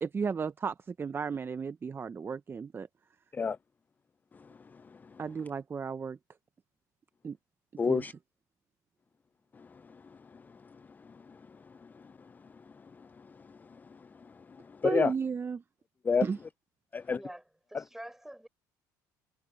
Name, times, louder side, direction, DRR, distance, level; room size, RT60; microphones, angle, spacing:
voice 1, 0.0-2.9 5.2-6.2 7.2-7.4 7.9-8.0 14.8-15.6 16.2-16.4, right 5 dB, 30° right, 0.8 m, -34 dB
voice 2, 7.8-8.1 9.6-10.0 10.3-10.4 11.3-11.4 11.8-12.0 13.9-15.1 16.0-16.3 16.9-17.2, left 5 dB, 20° left, 0.4 m, -30 dB
voice 3, 17.1-17.4 17.7-18.5, right 1 dB, 5° right, 5.9 m, -46 dB
supercardioid pair, 90°, 8 cm